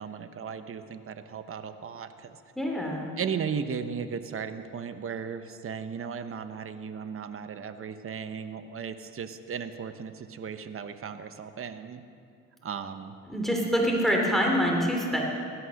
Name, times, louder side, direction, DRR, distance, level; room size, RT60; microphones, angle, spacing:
voice 1, 0.0-2.4 3.2-12.0 12.6-13.1, right 6 dB, 45° right, 10 dB, 1.1 m, -36 dB
voice 2, 2.6-3.1 13.3-15.2, equal, ahead, 0 dB, 3.2 m, -25 dB
17.0 x 13.0 x 6.5 m, 2.4 s
cardioid pair, 90°, 30 cm